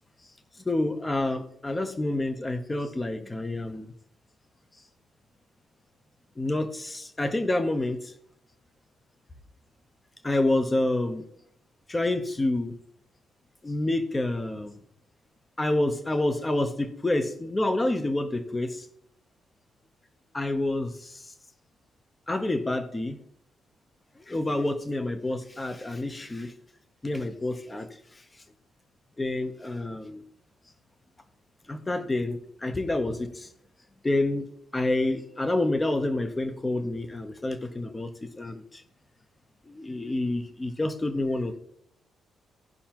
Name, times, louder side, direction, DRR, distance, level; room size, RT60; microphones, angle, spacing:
voice 1, 0.6-3.9 6.4-8.1 10.2-11.2 11.9-12.7 13.6-14.7 15.6-18.9 20.3-21.3 22.3-23.2 24.3-26.5 27.0-27.9 29.2-30.2 31.7-33.5 34.0-34.4 34.7-38.8 39.7-41.6, left 2 dB, 15° left, 8 dB, 0.7 m, -28 dB
17.0 x 5.7 x 2.9 m, 0.72 s
cardioid pair, 180°, 0 cm